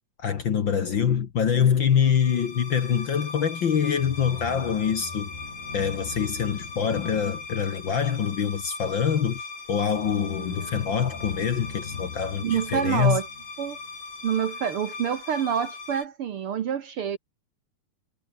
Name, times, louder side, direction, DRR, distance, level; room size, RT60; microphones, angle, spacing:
voice 1, 0.2-5.3 5.7-13.2, left 7 dB, 50° left, 1.8 m, -25 dB
sound 1, 1.9-16.0, left 4 dB, 90° left, 7.6 m, -38 dB
voice 2, 12.4-13.3 13.6-13.8 14.2-17.2, right 8 dB, 60° right, 1.7 m, -27 dB
omnidirectional pair, 3.3 m